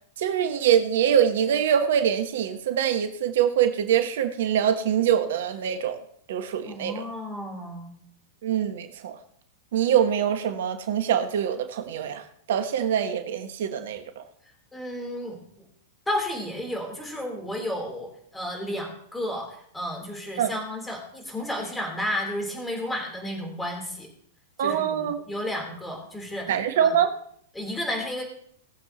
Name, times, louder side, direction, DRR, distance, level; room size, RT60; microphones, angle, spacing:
voice 1, 0.2-6.0 6.3-7.1 8.4-9.2 9.7-14.2 20.4-20.5 24.6-25.2 26.5-27.1, right 9 dB, 65° right, 8 dB, 1.3 m, -24 dB
voice 2, 6.7-7.9 14.7-15.7 16.1-24.1 24.6-26.9 27.5-28.2, left 1 dB, 10° left, 1 dB, 4.1 m, -32 dB
20.0 x 7.6 x 3.2 m, 0.64 s
hypercardioid pair, 100°, 0 cm